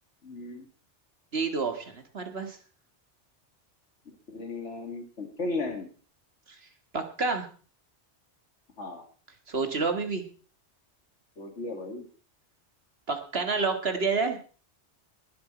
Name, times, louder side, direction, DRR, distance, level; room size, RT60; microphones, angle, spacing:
voice 1, 0.2-0.7 4.1-5.9 8.8-9.0 11.4-12.1, left 3 dB, 85° left, 4 dB, 2.6 m, -36 dB
voice 2, 1.3-2.6 6.5-6.6 6.9-7.5 9.5-10.2 13.1-14.4, right 4 dB, 60° right, 6 dB, 2.0 m, -29 dB
20.5 x 8.0 x 4.4 m, 0.39 s
omnidirectional pair, 1.2 m